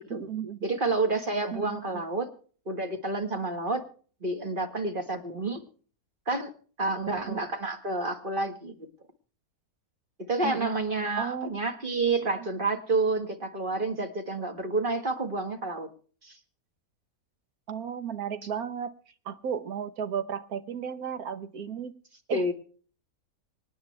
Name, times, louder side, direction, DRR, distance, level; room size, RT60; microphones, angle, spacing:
voice 1, 0.0-0.6 1.5-2.0 7.1-7.4 10.4-10.7 11.2-11.5 17.7-18.9 19.2-21.9 22.3-22.5, right 8 dB, 80° right, 11 dB, 1.6 m, -34 dB
voice 2, 0.6-2.3 2.7-3.8 4.2-5.6 6.3-6.5 6.8-8.9 10.3-15.9 16.2-16.4 22.3-22.5, right 3 dB, 35° right, 6 dB, 1.8 m, -29 dB
26.0 x 9.4 x 3.3 m, 0.43 s
omnidirectional pair, 1.5 m